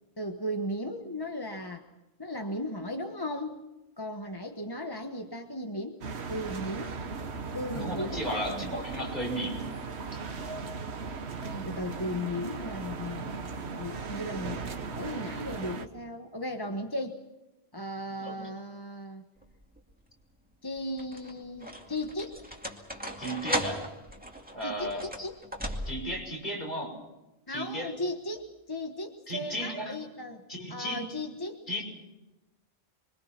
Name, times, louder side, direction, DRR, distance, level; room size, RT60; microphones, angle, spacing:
voice 1, 0.2-1.8 2.2-3.6 4.0-6.0 6.3-7.0 7.5-8.8 11.4-17.2 17.7-19.2 20.6-22.4 24.6-25.3 27.5-30.4 30.7-31.6, left 1 dB, 20° left, 4 dB, 1.3 m, -36 dB
sound 1, 6.0-15.9, right 4 dB, 85° right, 1.5 m, -37 dB
voice 2, 7.7-9.7 18.2-18.4 23.2-23.9 24.5-25.1 25.9-27.0 27.5-27.9 29.3-30.0 30.5-31.1 31.7-31.8, equal, 45° left, 0 dB, 6.2 m, -34 dB
sound 2, 19.4-19.9 20.8-26.3, equal, 10° right, 2.4 m, -37 dB
27.5 x 23.5 x 5.9 m, 1.0 s
omnidirectional pair, 1.1 m